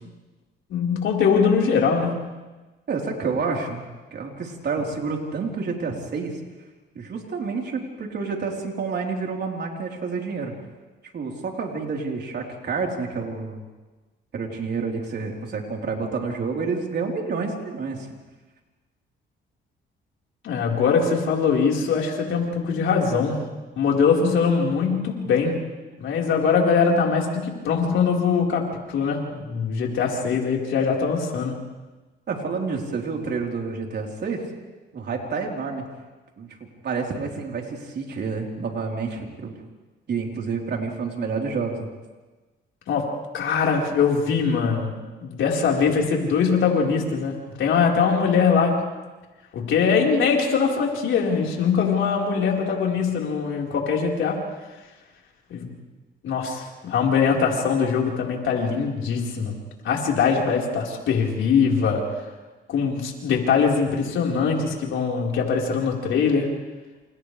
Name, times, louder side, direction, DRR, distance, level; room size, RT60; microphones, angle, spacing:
voice 1, 0.7-2.1 20.4-23.4 23.8-25.6 26.0-31.6 42.9-43.1 43.3-44.9 45.2-48.8 49.5-54.5 55.5-55.7 56.2-59.5 59.8-62.0 62.7-66.5, left 5 dB, 75° left, -1 dB, 4.5 m, -22 dB
voice 2, 2.9-3.8 4.1-6.3 6.9-10.5 11.1-13.6 14.3-18.1 32.3-34.4 34.9-35.8 36.4-36.5 36.8-39.6 40.1-41.9, right 4 dB, 55° right, 0 dB, 4.0 m, -29 dB
28.5 x 28.5 x 3.4 m, 1.2 s
cardioid pair, 90°, 20 cm